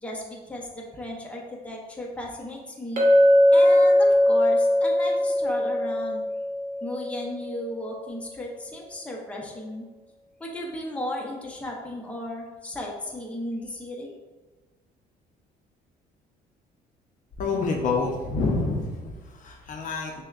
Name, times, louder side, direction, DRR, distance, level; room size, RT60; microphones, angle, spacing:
voice 1, 0.0-3.0 3.5-6.3 6.8-9.8 10.4-14.1, left 1 dB, 5° left, -2 dB, 0.7 m, -35 dB
Chink clink, 3.0-7.4, left 1 dB, 50° right, 1.0 m, -20 dB
voice 2, 17.4-20.2, left 3 dB, 50° left, 1 dB, 0.6 m, -27 dB
6.2 x 2.1 x 2.4 m, 1.2 s
cardioid pair, 110°, 17 cm